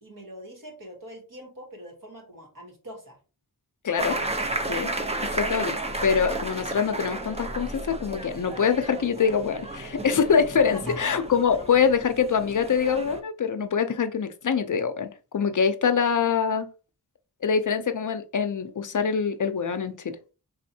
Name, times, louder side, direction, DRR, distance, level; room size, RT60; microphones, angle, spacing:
voice 1, 0.0-3.2 10.7-11.2, equal, 60° right, 1 dB, 1.7 m, -43 dB
voice 2, 3.8-4.2 4.7-4.9 5.2-5.8 6.0-16.7 17.4-20.2, left 6 dB, 55° left, 9 dB, 0.6 m, -24 dB
sound 1, 4.0-13.2, right 2 dB, 15° right, 0.6 m, -33 dB
4.1 x 3.4 x 2.7 m, 0.34 s
wide cardioid pair, 75°, 37 cm